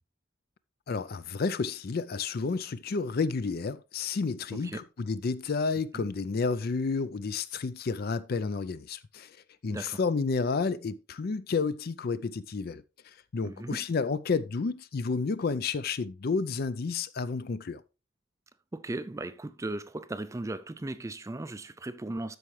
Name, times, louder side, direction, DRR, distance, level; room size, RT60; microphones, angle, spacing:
voice 1, 0.9-9.4 9.6-17.8, left 4 dB, 50° left, 0.4 m, -31 dB
voice 2, 9.7-10.0 13.4-13.8 18.7-22.4, right 2 dB, 15° right, 0.4 m, -37 dB
13.0 x 4.7 x 3.1 m
head